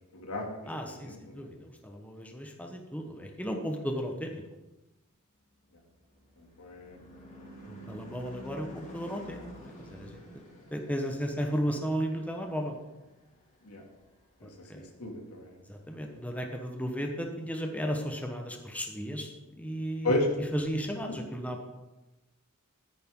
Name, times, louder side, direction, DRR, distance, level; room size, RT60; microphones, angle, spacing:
voice 1, 0.1-1.5 6.4-7.0 13.6-13.8 14.4-15.6 20.0-20.3, left 1 dB, 90° left, 1 dB, 2.6 m, -34 dB
voice 2, 0.7-4.4 7.7-10.4 10.7-12.8 14.7-14.8 15.7-19.3 19.6-20.1 20.5-21.7, equal, 5° left, 3 dB, 1.2 m, -34 dB
Car passing by / Truck / Engine, 5.6-14.3, left 1 dB, 35° left, 3.9 m, -50 dB
13.0 x 10.5 x 3.8 m, 1.1 s
head